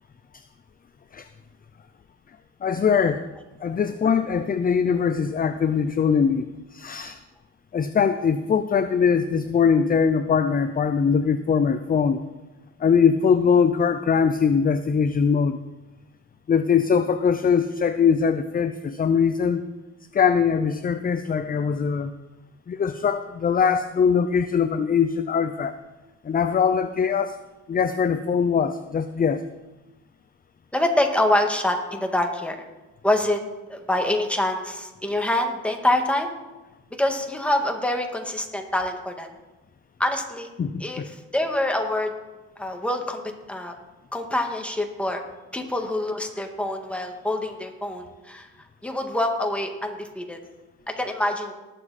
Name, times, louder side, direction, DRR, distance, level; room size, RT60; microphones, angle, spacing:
voice 1, 2.6-3.3 3.6-6.4 6.7-7.2 7.7-12.2 12.8-15.6 16.5-19.6 20.1-22.1 22.7-25.8 26.2-27.4 27.7-29.4 40.6-41.1, left 6 dB, 30° left, 11 dB, 0.6 m, -21 dB
voice 2, 30.7-32.6 33.0-33.4 33.7-36.3 37.0-39.3 40.0-40.5 40.8-42.1 42.6-43.7 44.1-45.2 45.5-48.5 48.8-50.4 50.9-51.5, left 1 dB, 5° left, 3 dB, 1.9 m, -25 dB
19.5 x 7.1 x 4.2 m, 1.1 s
cardioid pair, 90°, 30 cm